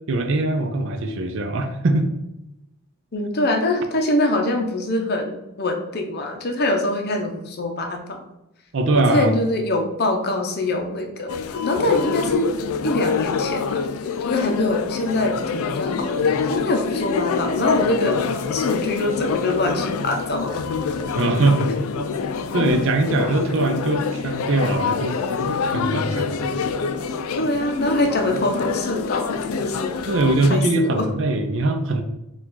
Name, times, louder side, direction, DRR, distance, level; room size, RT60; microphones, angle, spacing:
voice 1, 0.1-2.1 8.7-9.3 21.2-21.7 22.5-26.5 30.1-32.0, right 2 dB, 60° right, 7 dB, 0.5 m, -21 dB
voice 2, 3.1-8.2 8.9-11.3 11.6-12.5 12.8-13.8 14.2-18.2 18.5-20.5 27.4-29.9 30.5-31.1, left 1 dB, 50° left, 4 dB, 0.6 m, -24 dB
sound 1, 11.3-30.5, left 5 dB, 90° left, 0.4 m, -25 dB
4.7 x 2.4 x 3.9 m, 0.90 s
head